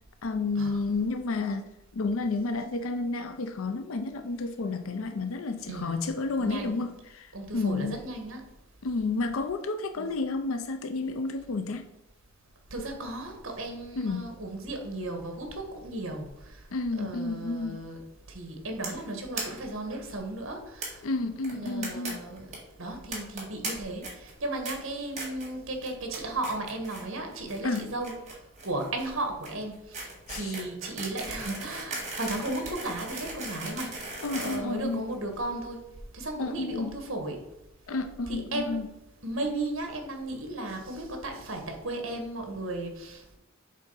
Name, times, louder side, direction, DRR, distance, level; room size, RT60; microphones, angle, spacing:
voice 1, 0.2-1.6 1.9-8.0 8.8-11.8 14.0-14.3 16.7-17.8 21.0-22.2 27.6-27.9 30.3-30.5 34.2-35.0 36.4-36.9 37.9-38.8, left 3 dB, 80° left, 8 dB, 0.5 m, -31 dB
voice 2, 5.7-6.1 6.4-6.8 7.3-8.4 9.9-10.1 12.7-16.6 17.0-18.0 18.3-21.0 21.5-22.5 22.8-28.2 28.6-35.9 36.1-37.4 38.3-38.8 39.2-43.4, right 2 dB, 70° right, 4 dB, 1.5 m, -35 dB
sound 1, 18.8-19.0 19.3-19.4 19.7-19.8 20.0-20.1 20.8-20.9 21.4-22.1 22.4-22.6 23.1-23.7 24.0-24.3 24.6-24.7 25.2-25.5 25.8-26.2 26.4-27.0 27.3-35.4, right 3 dB, 35° right, 2.0 m, -37 dB
7.4 x 3.8 x 5.5 m, 0.92 s
head